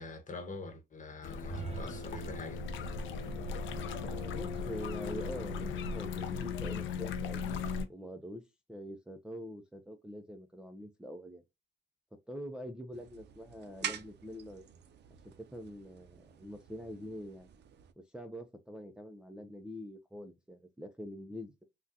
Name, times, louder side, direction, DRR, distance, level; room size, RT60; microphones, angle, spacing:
voice 1, 0.0-2.6, left 3 dB, 40° left, 1.0 m, -44 dB
sound 1, 1.2-7.9, left 5 dB, 75° left, 0.6 m, -37 dB
sound 2, 1.4-5.3, right 5 dB, 30° right, 0.8 m, -47 dB
voice 2, 4.0-8.4 8.7-11.4 12.3-14.7 15.2-17.5 18.1-21.6, equal, 5° right, 0.4 m, -45 dB
sound 3, 12.9-17.9, right 9 dB, 60° right, 0.5 m, -46 dB
3.6 x 2.3 x 2.7 m
cardioid pair, 90°, 20 cm